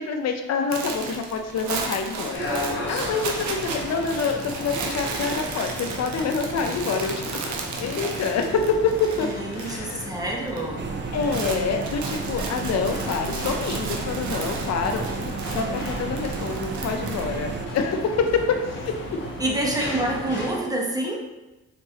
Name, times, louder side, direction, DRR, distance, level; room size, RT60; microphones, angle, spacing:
voice 1, 0.0-2.5 2.9-7.5 7.8-9.3 9.6-10.1 11.1-15.0 15.5-18.9 19.9-20.0, left 5 dB, 60° left, 5 dB, 0.7 m, -26 dB
sound 1, 0.7-10.0 10.2-10.6 10.9-17.9, right 4 dB, 70° right, 0.8 m, -34 dB
sound 2, 2.3-20.5, left 1 dB, 40° left, 1.4 m, -35 dB
voice 2, 6.6-6.9 9.2-10.9 19.4-21.2, right 1 dB, 10° right, -1 dB, 1.0 m, -28 dB
sound 3, 10.8-17.7, right 5 dB, 40° right, 0.4 m, -33 dB
4.5 x 4.0 x 2.9 m, 1.0 s
cardioid pair, 90°, 30 cm